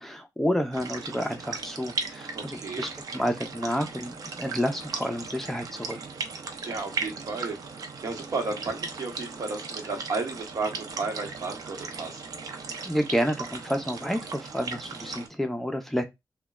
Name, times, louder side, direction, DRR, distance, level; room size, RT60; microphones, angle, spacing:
voice 1, 0.0-6.0 12.8-16.1, equal, 5° left, 0.5 m, -30 dB
sound 1, 0.7-15.3, right 4 dB, 90° right, 0.5 m, -37 dB
voice 2, 2.3-2.9 6.6-7.6 8.0-12.2, right 3 dB, 70° right, 1.0 m, -33 dB
3.1 x 2.2 x 2.3 m
wide cardioid pair, 135°, 6 cm